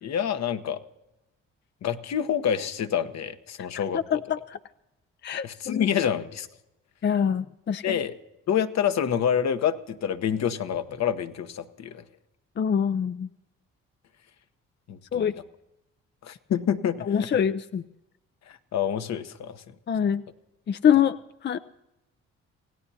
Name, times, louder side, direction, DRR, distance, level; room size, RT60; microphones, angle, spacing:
voice 1, 0.0-0.8 1.8-4.2 5.4-6.5 7.8-8.1 8.5-12.0 14.9-15.3 16.2-17.1 18.5-19.6, left 8 dB, 60° left, 9 dB, 1.1 m, -27 dB
voice 2, 3.6-4.6 5.2-5.9 7.0-8.0 12.6-13.3 15.1-15.3 17.0-17.8 19.9-20.2 20.7-21.2 21.4-21.6, left 8 dB, 35° left, 12 dB, 0.5 m, -25 dB
27.0 x 17.0 x 2.8 m, 0.93 s
supercardioid pair, 60°, 31 cm